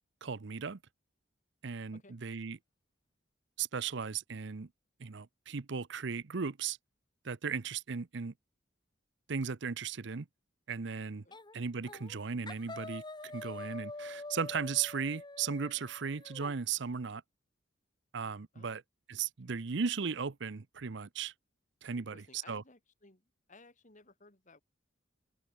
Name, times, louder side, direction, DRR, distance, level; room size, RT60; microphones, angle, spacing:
voice 1, 0.2-0.8 1.6-2.6 3.6-4.7 5.0-6.8 7.2-8.3 9.3-10.3 10.7-11.2 11.5-17.2 18.1-18.8 19.1-21.3 21.8-22.6, right 6 dB, 65° right, 0.7 m, -36 dB
sound 1, 11.3-11.6 11.8-12.2 12.5-16.5, left 2 dB, 25° left, 2.2 m, -46 dB
voice 2, 21.9-23.2 23.5-24.6, left 2 dB, 40° left, 3.8 m, -58 dB
open air
head